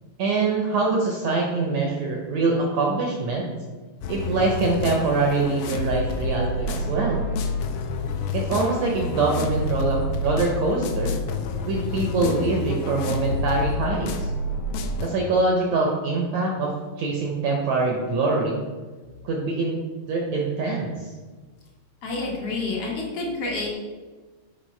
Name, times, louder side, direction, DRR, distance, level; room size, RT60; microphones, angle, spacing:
voice 1, 0.2-3.5 4.1-7.2 8.3-11.1 11.6-14.3 15.0-18.6 19.2-19.8 20.1-21.1, right 3 dB, 75° right, -1 dB, 1.6 m, -24 dB
sound 1, 4.0-15.1, left 2 dB, 80° left, 2.2 m, -28 dB
voice 2, 22.0-23.7, left 3 dB, 55° left, -2 dB, 1.8 m, -28 dB
7.5 x 5.1 x 4.4 m, 1.4 s
omnidirectional pair, 4.0 m